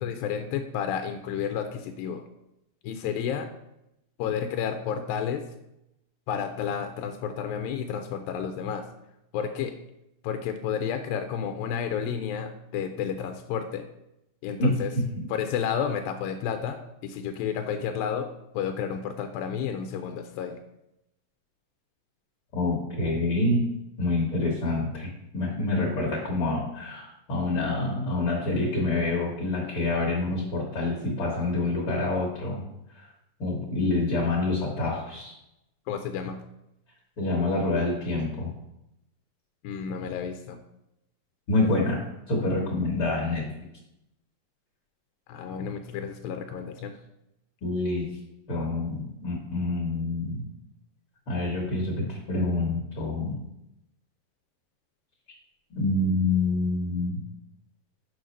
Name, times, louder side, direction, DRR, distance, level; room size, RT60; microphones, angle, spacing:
voice 1, 0.0-2.2 2.8-3.5 4.2-5.4 6.3-8.8 9.3-9.8 10.2-13.9 14.4-14.9 15.3-18.3 18.5-20.6 35.9-36.4 39.6-40.6 41.6-41.7 45.3-46.9, left 8 dB, 85° left, 6 dB, 2.4 m, -31 dB
voice 2, 22.5-23.7 24.0-32.6 32.9-33.1 33.4-35.3 37.2-38.5 41.5-43.5 47.6-48.1 48.5-50.4 51.3-53.4 55.7-57.2, left 2 dB, 50° left, -1 dB, 1.7 m, -27 dB
6.3 x 6.3 x 5.3 m, 0.86 s
omnidirectional pair, 4.1 m